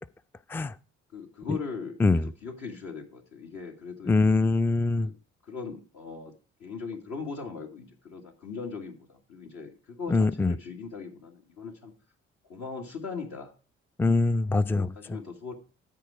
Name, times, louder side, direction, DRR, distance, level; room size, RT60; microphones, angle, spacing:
voice 1, 1.1-4.3 5.0-5.2 5.4-6.3 6.6-11.9 12.4-13.5 14.5-15.5, left 5 dB, 60° left, 1.9 m, -39 dB
voice 2, 4.1-5.1 10.1-10.5 14.0-15.2, left 3 dB, 5° left, 0.4 m, -23 dB
13.5 x 4.6 x 4.9 m
hypercardioid pair, 45°, 31 cm